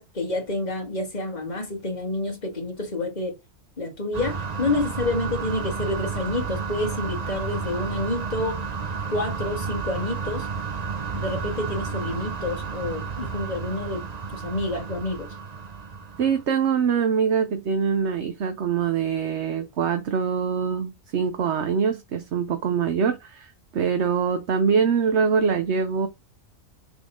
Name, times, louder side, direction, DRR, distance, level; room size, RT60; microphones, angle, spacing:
voice 1, 0.0-3.4 3.8-8.6 9.1-10.5 11.1-14.0 14.3-15.3, left 2 dB, 30° left, 2.0 m, -28 dB
sound 1, 4.1-16.4, right 5 dB, 35° right, 0.8 m, -32 dB
voice 2, 16.2-26.1, right 6 dB, 60° right, 1.1 m, -24 dB
6.1 x 4.2 x 3.8 m
omnidirectional pair, 1.4 m